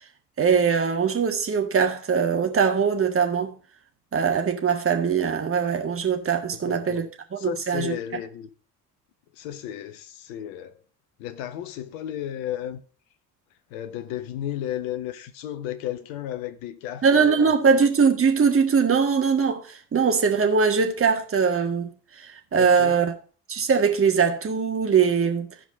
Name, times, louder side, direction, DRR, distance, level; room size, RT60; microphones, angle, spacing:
voice 1, 0.4-3.6 4.1-7.0 7.3-7.9 17.0-21.9 22.2-23.1 23.5-25.5, right 6 dB, 25° right, 1.6 m, -21 dB
voice 2, 6.5-7.1 7.4-8.5 9.3-10.8 11.2-12.8 13.7-17.5 22.5-23.0, left 11 dB, 60° left, 1.2 m, -33 dB
15.0 x 5.1 x 4.0 m
figure-of-eight pair, 60°, 48 cm